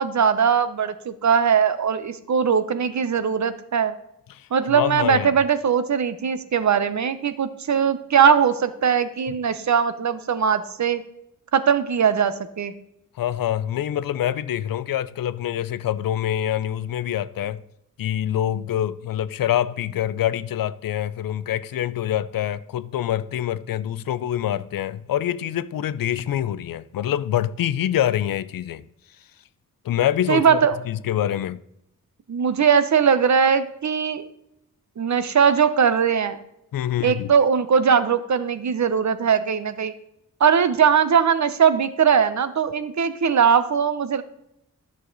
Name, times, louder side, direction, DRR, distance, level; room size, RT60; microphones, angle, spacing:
voice 1, 0.0-3.9 4.5-11.0 11.5-12.7 30.3-30.8 32.3-34.3 35.0-36.4 37.0-39.9 40.4-44.2, right 7 dB, 55° right, 0.7 m, -20 dB
voice 2, 4.3-5.3 9.3-9.4 13.2-17.6 18.0-28.8 29.8-30.6 30.9-31.6 36.7-37.3, left 11 dB, 85° left, 0.5 m, -25 dB
11.0 x 6.5 x 3.9 m
wide cardioid pair, 90°, 33 cm